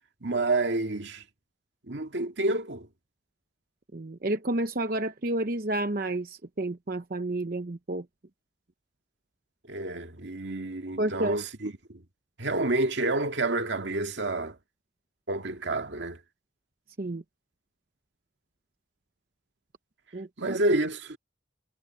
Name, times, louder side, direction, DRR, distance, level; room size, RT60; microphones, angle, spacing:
voice 1, 0.2-1.2 1.9-2.9 9.7-12.0 12.4-14.6 15.3-16.2 20.4-21.2, right 2 dB, 75° right, 2.0 m, -29 dB
voice 2, 3.9-8.1 11.0-11.4 17.0-17.2 20.1-20.6, right 1 dB, 50° right, 0.8 m, -30 dB
head